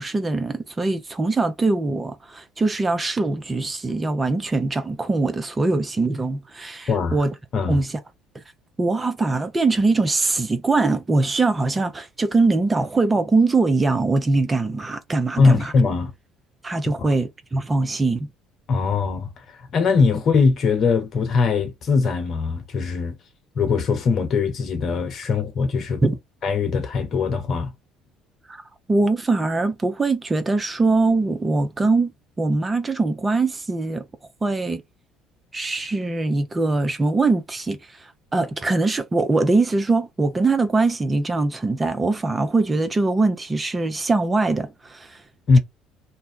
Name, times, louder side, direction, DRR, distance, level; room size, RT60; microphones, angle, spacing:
voice 1, 0.0-7.3 7.7-7.9 8.8-15.7 16.6-18.3 26.0-26.1 28.5-28.6 28.9-32.1 32.4-34.1 34.4-34.8 35.5-45.2, right 3 dB, 20° right, 0.6 m, -22 dB
voice 2, 6.9-7.2 7.5-7.8 15.4-16.1 17.0-17.1 18.7-19.4 19.7-23.1 23.5-26.0 26.4-27.7 45.5-45.6, left 4 dB, 45° left, 1.0 m, -21 dB
2.7 x 2.1 x 3.7 m
figure-of-eight pair, 55°, 0 cm